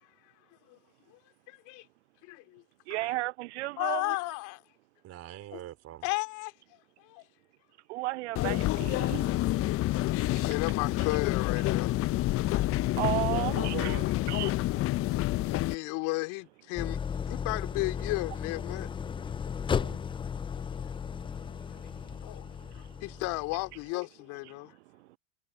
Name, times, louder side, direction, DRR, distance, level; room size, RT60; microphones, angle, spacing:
voice 1, 1.5-1.9 2.2-2.6 2.9-3.2 3.8-4.6 5.5-5.6 6.0-7.3 10.4-12.0 15.1-17.0 17.3-18.9 20.6-20.7 22.2-22.5 22.7-24.7, left 25 dB, 55° left, 3.4 m, -34 dB
voice 2, 2.9-4.0 7.9-9.2 13.0-13.7 14.3-14.5, right 19 dB, 65° right, 0.8 m, -33 dB
voice 3, 5.0-6.0 13.1-14.1 19.7-20.0, right 13 dB, 40° right, 3.8 m, -42 dB
sound 1, 8.4-15.8, left 16 dB, 35° left, 0.8 m, -28 dB
Idling, 16.8-23.8, left 7 dB, 15° left, 0.5 m, -35 dB
hypercardioid pair, 80°, 37 cm